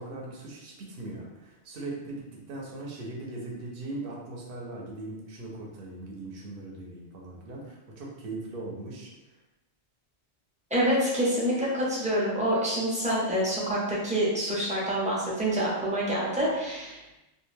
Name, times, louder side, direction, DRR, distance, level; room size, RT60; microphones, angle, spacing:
voice 1, 0.0-9.1, right 2 dB, 60° right, -2 dB, 0.8 m, -39 dB
voice 2, 10.7-17.2, equal, 10° right, -7 dB, 0.5 m, -27 dB
2.4 x 2.2 x 3.2 m, 1.0 s
omnidirectional pair, 1.1 m